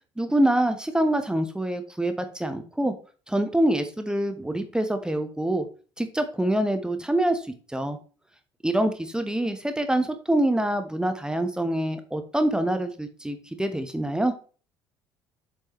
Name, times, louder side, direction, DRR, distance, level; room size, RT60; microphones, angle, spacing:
voice 1, 0.2-2.9 3.3-5.7 6.0-7.4 7.7-8.0 8.6-14.3, right 1 dB, 5° right, 8 dB, 1.1 m, -25 dB
7.6 x 6.9 x 3.1 m, 0.37 s
figure-of-eight pair, 55°, 12 cm